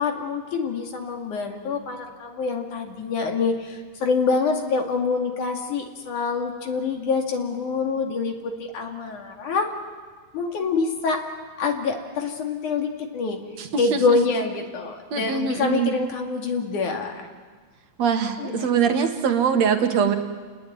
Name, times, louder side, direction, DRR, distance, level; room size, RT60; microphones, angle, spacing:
voice 1, 0.0-9.7 10.3-11.2 11.6-13.4 13.8-17.3 18.4-18.7, left 4 dB, 65° left, 3 dB, 3.8 m, -26 dB
voice 2, 13.6-14.2 15.1-15.9 18.0-20.2, right 6 dB, 55° right, 6 dB, 2.6 m, -23 dB
30.0 x 19.5 x 9.4 m, 1.5 s
omnidirectional pair, 3.9 m